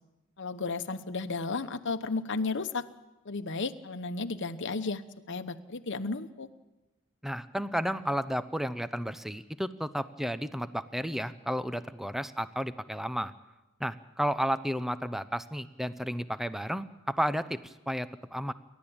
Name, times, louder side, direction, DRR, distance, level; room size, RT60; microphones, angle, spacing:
voice 1, 0.4-2.8 3.2-5.0 5.3-6.5, left 3 dB, 60° left, 9 dB, 1.1 m, -33 dB
voice 2, 7.2-13.3 13.8-18.5, equal, ahead, 13 dB, 0.6 m, -32 dB
29.0 x 12.5 x 8.8 m, 1.0 s
head